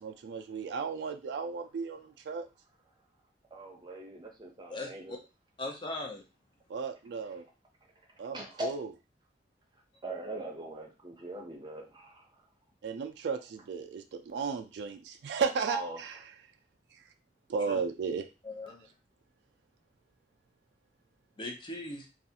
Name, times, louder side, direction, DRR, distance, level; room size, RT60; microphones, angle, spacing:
voice 1, 0.0-2.5 6.7-7.5 8.2-8.9 12.8-16.1 17.5-18.3, right 5 dB, 70° right, 6 dB, 0.3 m, -34 dB
voice 2, 3.5-5.2 8.3-8.7 10.0-12.2 15.7-16.0, right 1 dB, 25° right, 1 dB, 0.6 m, -40 dB
voice 3, 4.7-5.2 5.6-6.2 17.7-17.8 18.4-18.9 21.4-22.1, left 2 dB, 30° left, 2 dB, 0.5 m, -39 dB
2.4 x 2.3 x 2.7 m, 0.29 s
head